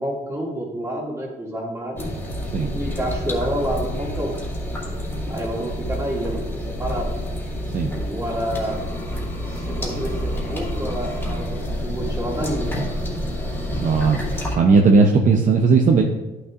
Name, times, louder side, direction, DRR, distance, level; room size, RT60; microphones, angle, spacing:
voice 1, 0.0-2.1 2.7-4.3 5.3-7.1 7.9-8.8 9.5-12.8, right 1 dB, 15° right, -2 dB, 2.2 m, -29 dB
sound 1, 2.0-14.6, equal, 10° left, 2.3 m, -28 dB
voice 2, 13.8-16.0, right 4 dB, 45° right, 3 dB, 0.7 m, -17 dB
11.0 x 6.5 x 2.5 m, 1.1 s
cardioid pair, 115°, 18 cm